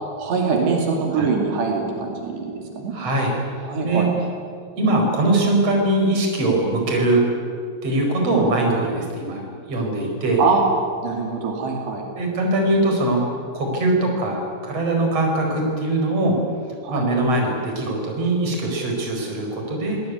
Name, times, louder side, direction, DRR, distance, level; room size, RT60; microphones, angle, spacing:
voice 1, 0.2-2.9 3.7-4.1 10.4-10.6 11.0-12.0 16.8-17.1, right 4 dB, 75° right, 1 dB, 4.7 m, -23 dB
voice 2, 2.9-3.4 3.8-4.1 4.8-7.2 7.8-10.4 12.2-13.2 13.5-16.4 16.9-20.0, right 2 dB, 35° right, 1 dB, 5.6 m, -21 dB
24.5 x 18.5 x 9.7 m, 2.3 s
omnidirectional pair, 4.9 m